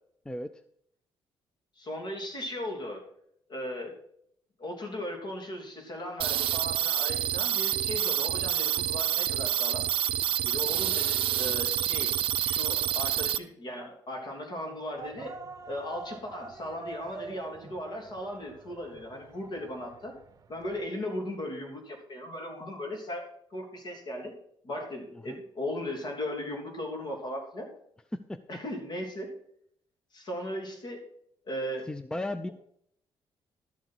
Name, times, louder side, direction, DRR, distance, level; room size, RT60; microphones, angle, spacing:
voice 1, 1.8-3.0 3.5-3.9 4.6-9.9 10.4-12.1 12.4-15.4 15.6-20.1 20.5-24.3 24.6-27.7 28.5-29.3 30.1-31.0 31.4-31.9, left 1 dB, 50° left, 1 dB, 3.2 m, -37 dB
sound 1, 6.2-13.4, right 11 dB, 65° right, 0.5 m, -28 dB
sound 2, 15.0-20.9, right 4 dB, 40° right, 0.9 m, -46 dB
voice 2, 31.9-32.5, left 1 dB, 10° left, 12 dB, 0.4 m, -35 dB
12.0 x 7.9 x 4.6 m, 0.69 s
cardioid pair, 130°, 10 cm